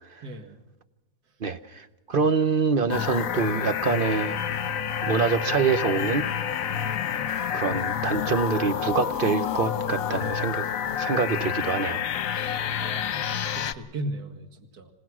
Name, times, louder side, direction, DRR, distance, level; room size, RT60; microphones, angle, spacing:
voice 1, 0.2-0.6 2.1-2.2 12.3-13.2 13.5-14.5 14.7-14.9, right 1 dB, 70° right, 7 dB, 2.3 m, -37 dB
voice 2, 1.4-4.4 5.0-6.3 7.5-10.7 11.0-12.0, right 5 dB, 45° right, 11 dB, 0.8 m, -25 dB
sound 1, 2.9-13.7, left 8 dB, 60° left, 1.2 m, -29 dB
26.5 x 18.0 x 6.1 m, 1.0 s
omnidirectional pair, 1.7 m